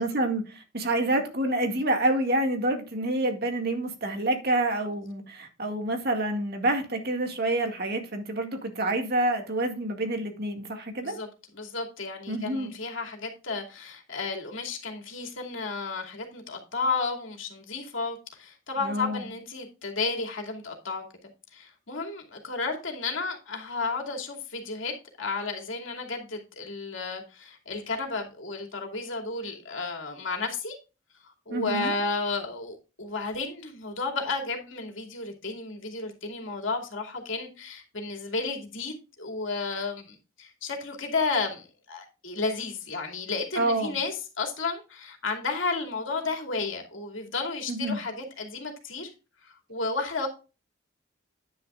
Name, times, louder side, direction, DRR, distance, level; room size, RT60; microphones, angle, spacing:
voice 1, 0.0-11.2 12.3-12.7 18.8-19.3 31.5-32.0 43.6-44.0 47.7-48.0, right 1 dB, 50° right, 2.1 m, -28 dB
voice 2, 11.5-21.0 21.5-30.8 31.5-49.1 49.7-50.3, left 3 dB, 75° left, 2.6 m, -32 dB
10.0 x 9.9 x 2.5 m
head